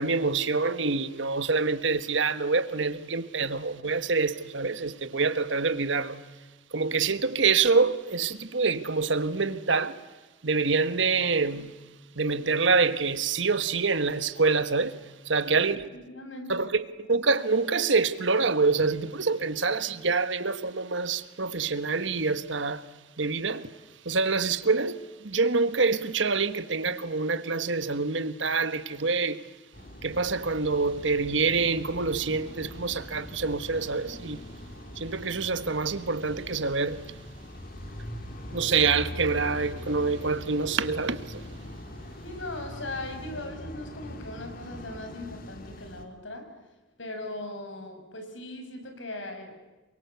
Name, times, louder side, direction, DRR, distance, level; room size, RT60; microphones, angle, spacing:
voice 1, 0.0-6.2 6.7-10.0 10.4-11.7 12.2-15.0 15.3-15.9 16.5-22.8 23.2-23.7 24.0-29.4 30.0-34.4 35.0-37.0 38.5-41.4, right 4 dB, 75° right, 1.4 m, -26 dB
voice 2, 15.9-16.7 42.2-46.5 47.0-49.5, left 2 dB, 80° left, 6.2 m, -39 dB
sound 1, 29.7-46.0, left 1 dB, 50° left, 2.9 m, -42 dB
27.5 x 24.0 x 8.2 m
head